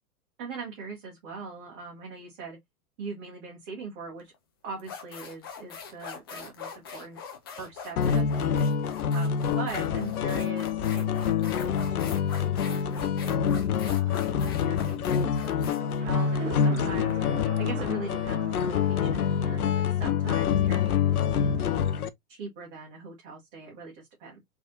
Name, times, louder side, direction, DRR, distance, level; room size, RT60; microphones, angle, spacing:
voice 1, 0.4-2.6 3.0-4.3 4.6-7.2 7.6-8.7 9.1-13.4 13.9-17.2 17.6-21.8 22.3-24.4, right 4 dB, 35° right, 1.4 m, -41 dB
sound 1, 4.2-4.3 4.8-17.1, left 6 dB, 20° left, 0.3 m, -42 dB
sound 2, 8.0-22.1, left 7 dB, 75° left, 0.6 m, -26 dB
sound 3, 16.0-22.0, right 5 dB, 55° right, 1.2 m, -43 dB
3.4 x 3.2 x 2.6 m
figure-of-eight pair, 110°, 45 cm